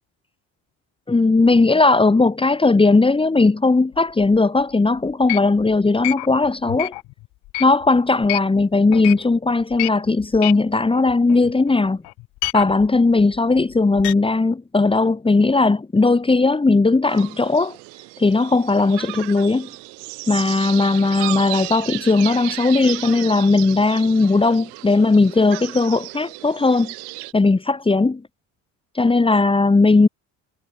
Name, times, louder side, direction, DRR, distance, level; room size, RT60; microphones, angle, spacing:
voice 1, 1.1-6.9 7.6-12.0 12.5-17.8 18.2-19.7 20.3-26.9 27.3-28.2 28.9-30.1, left 3 dB, 15° left, 3.3 m, -17 dB
sound 1, 3.9-4.6 5.1-8.6 8.9-9.3 9.6-11.8 12.0-14.1, left 21 dB, 70° left, 2.7 m, -29 dB
sound 2, 17.1-27.3, right 33 dB, 90° right, 6.1 m, -34 dB
cardioid pair, 125°, 40 cm